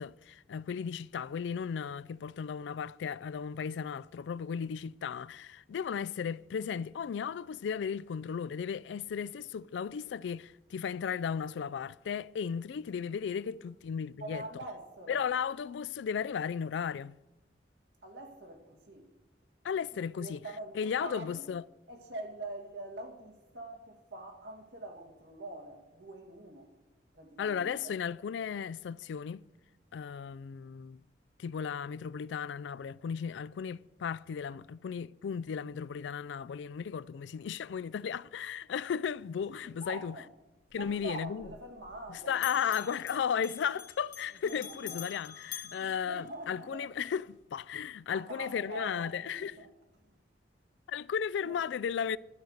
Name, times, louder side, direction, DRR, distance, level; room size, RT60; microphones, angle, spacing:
voice 1, 0.0-14.4 15.1-17.2 19.6-20.4 20.7-21.6 27.4-29.4 29.9-31.0 31.4-40.2 40.7-41.5 42.3-49.5 50.9-52.2, left 7 dB, 85° left, 0.3 m, -35 dB
voice 2, 14.2-15.3 18.0-19.1 19.9-21.5 21.9-26.7 27.1-27.9 39.6-40.3 40.8-43.2 44.4-45.0 45.7-46.9 48.1-49.7 51.4-51.6, right 2 dB, 85° right, 2.1 m, -45 dB
Bell, 40.7-42.1 42.3-46.8, left 11 dB, 50° left, 1.0 m, -47 dB
12.0 x 9.0 x 6.5 m
head